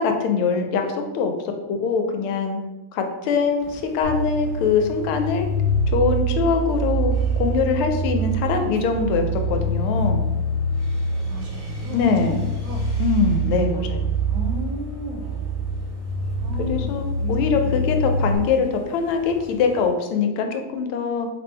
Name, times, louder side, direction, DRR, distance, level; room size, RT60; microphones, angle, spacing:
voice 1, 0.0-1.3 1.7-2.6 2.9-5.5 5.9-10.2 11.9-12.4 13.0-14.1 16.7-17.0 17.3-21.3, left 5 dB, 85° left, 5 dB, 1.5 m, -22 dB
sound 1, 3.6-19.9, right 1 dB, 20° left, 1.0 m, -44 dB
sound 2, 4.0-18.3, right 1 dB, 55° left, 0.8 m, -25 dB
voice 2, 11.2-12.9 14.3-15.6 16.4-17.8 18.1-18.5, right 1 dB, 75° right, 2 dB, 1.3 m, -35 dB
3.2 x 2.6 x 4.3 m, 1.1 s
omnidirectional pair, 2.3 m